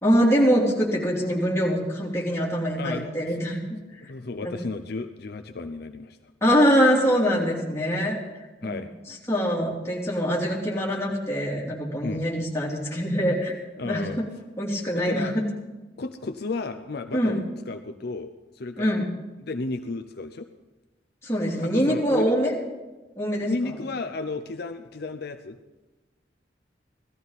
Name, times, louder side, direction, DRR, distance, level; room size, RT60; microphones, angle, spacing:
voice 1, 0.0-3.8 4.4-4.5 6.4-8.2 8.6-8.7 9.3-13.6 13.8-14.3 14.6-15.4 17.1-17.4 18.8-19.0 21.2-22.5 23.2-23.7, equal, 15° left, -4 dB, 3.2 m, -23 dB
voice 2, 2.8-3.4 4.0-6.2 8.6-8.9 12.0-12.2 13.8-14.2 14.9-15.4 16.0-17.4 17.7-18.3 18.5-19.1 19.4-20.5 21.6-22.3 23.4-25.6, left 3 dB, 65° left, 7 dB, 0.6 m, -33 dB
17.5 x 14.0 x 4.1 m, 1.2 s
head